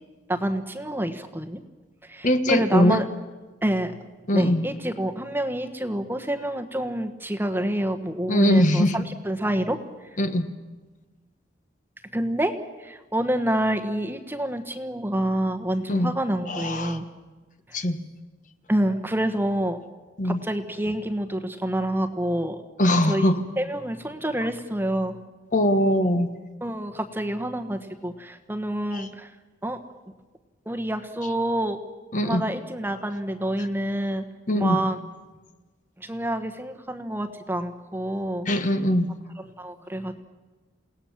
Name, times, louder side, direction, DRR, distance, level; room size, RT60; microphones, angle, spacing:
voice 1, 0.3-1.6 2.1-3.0 3.6-3.9 4.3-9.8 12.1-12.5 12.8-17.1 18.7-19.8 20.2-22.6 23.1-23.3 23.6-25.1 26.6-29.3 29.6-29.8 30.7-31.8 32.2-34.2 34.5-35.0 36.0-38.5 39.6-40.1, right 1 dB, 10° right, 7 dB, 1.2 m, -27 dB
voice 2, 2.2-3.0 4.3-4.6 8.3-9.0 10.2-10.5 15.9-16.1 16.5-17.0 17.7-18.0 20.2-20.4 22.8-23.4 25.5-26.3 28.9-29.1 32.1-32.5 33.6-33.7 34.5-34.8 38.4-39.1, left 1 dB, 45° left, 9 dB, 1.4 m, -21 dB
28.5 x 18.0 x 7.3 m, 1.3 s
head